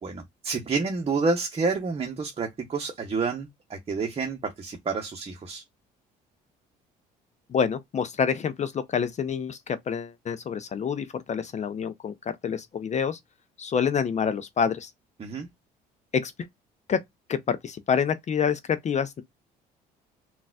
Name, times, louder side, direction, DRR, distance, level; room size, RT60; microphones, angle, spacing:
voice 1, 0.0-5.6 15.2-15.5, right 4 dB, 30° right, 0.8 m, -29 dB
voice 2, 7.5-12.1 12.4-13.2 13.6-14.9 16.1-16.5 16.9-17.0 17.3-19.2, left 7 dB, 40° left, 0.5 m, -27 dB
3.8 x 2.4 x 2.2 m
supercardioid pair, 65°, 19 cm